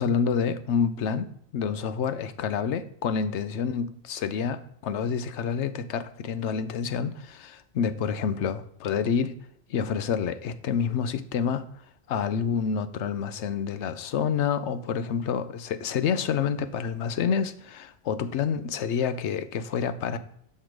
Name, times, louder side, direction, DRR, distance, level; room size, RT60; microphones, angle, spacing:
voice 1, 0.0-9.3 9.7-11.7 12.1-20.2, left 6 dB, 80° left, 12 dB, 0.9 m, -28 dB
6.6 x 5.8 x 4.6 m, 0.69 s
omnidirectional pair, 1.2 m